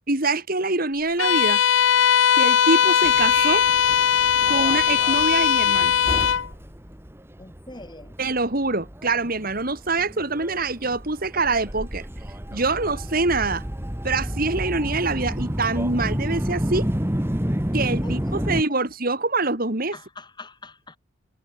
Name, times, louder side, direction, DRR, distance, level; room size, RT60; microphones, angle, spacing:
voice 1, 0.1-1.6 2.4-3.6 4.5-5.9 8.2-12.1 12.5-13.6 14.0-16.9 17.7-20.0, right 3 dB, 50° right, 3.0 m, -25 dB
Bowed string instrument, 1.2-6.5, left 8 dB, 75° left, 0.6 m, -19 dB
Subway metro underground, 3.0-18.6, equal, 10° right, 1.5 m, -30 dB
voice 2, 7.4-8.2 18.0-18.8 19.9-21.0, left 2 dB, 25° left, 7.0 m, -43 dB
head